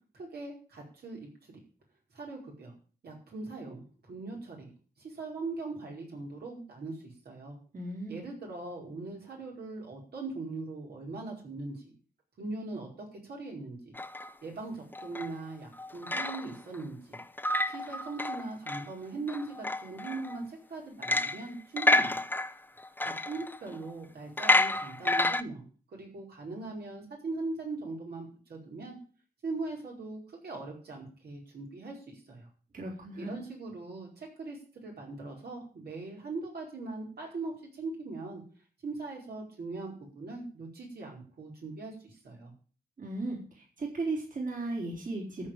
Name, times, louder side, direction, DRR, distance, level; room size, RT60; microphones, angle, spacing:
voice 1, 0.1-1.2 2.1-2.7 3.0-4.7 5.0-7.6 8.1-11.9 12.4-13.9 14.4-17.2 17.7-22.2 23.0-25.6 25.9-29.0 29.4-32.5 33.1-38.4 38.8-42.5, right 3 dB, 80° right, -2 dB, 5.0 m, -40 dB
voice 2, 7.7-8.2 32.7-33.4 43.0-45.5, right 2 dB, 55° right, -2 dB, 4.3 m, -36 dB
sound 1, 14.0-14.3 14.9-15.3 15.7-16.8 17.1-18.9 19.3-20.4 21.0-21.5 21.8-23.9 24.4-25.4, left 2 dB, 10° left, 0.7 m, -29 dB
13.5 x 4.9 x 9.1 m, 0.40 s
wide cardioid pair, 95°, 16 cm